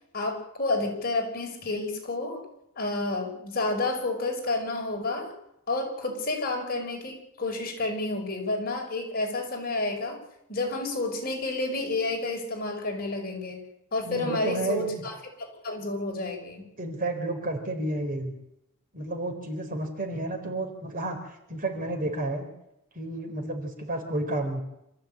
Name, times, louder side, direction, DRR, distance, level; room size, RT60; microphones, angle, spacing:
voice 1, 0.1-2.4 2.8-5.3 5.7-10.2 10.5-13.6 13.9-15.1 15.4-16.7, left 2 dB, 45° left, 2 dB, 5.5 m, -30 dB
voice 2, 14.0-15.0 16.8-18.3 18.9-21.2 21.5-22.5 22.9-24.6, right 2 dB, 40° right, 5 dB, 4.2 m, -31 dB
27.0 x 14.5 x 8.8 m, 0.84 s
head